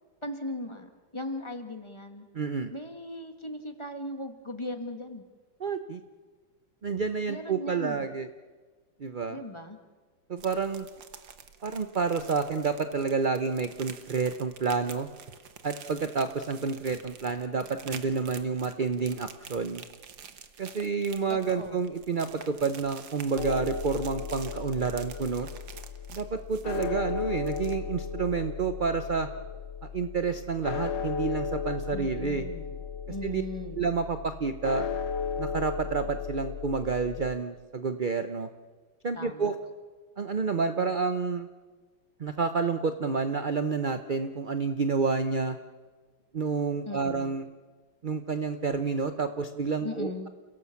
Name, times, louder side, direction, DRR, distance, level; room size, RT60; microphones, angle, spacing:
voice 1, 0.2-2.3 2.7-5.2 7.3-8.1 9.3-9.8 21.3-21.8 31.9-32.8 33.1-33.9 39.1-39.5 46.8-47.3 49.8-50.3, left 1 dB, 15° left, 6 dB, 1.5 m, -38 dB
voice 2, 2.3-2.7 5.6-6.0 6.8-8.3 9.0-9.4 10.3-10.9 11.6-15.1 15.6-19.8 20.6-25.5 26.1-29.3 29.9-32.5 33.2-33.4 33.8-34.9 35.4-38.5 39.0-39.6 40.2-41.5 42.2-45.6 46.3-47.5 48.0-50.3, right 5 dB, 45° right, 9 dB, 0.6 m, -29 dB
sound 1, 10.4-27.1 27.4-27.8, right 7 dB, 85° right, 2.0 m, -48 dB
sound 2, 23.4-37.4, left 6 dB, 75° left, 1.8 m, -35 dB
29.5 x 17.0 x 7.1 m, 1.4 s
omnidirectional pair, 2.0 m